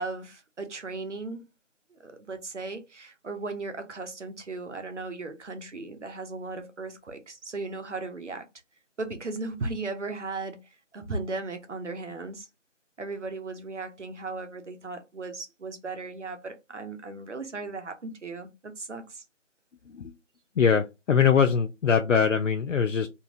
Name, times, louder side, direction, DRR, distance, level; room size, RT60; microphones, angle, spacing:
voice 1, 0.0-1.5 1.9-8.5 9.0-12.5 13.0-19.2, right 3 dB, 65° right, 0.8 m, -36 dB
voice 2, 20.6-23.1, left 6 dB, 75° left, 0.5 m, -22 dB
2.8 x 2.5 x 2.8 m
figure-of-eight pair, 180°, 38 cm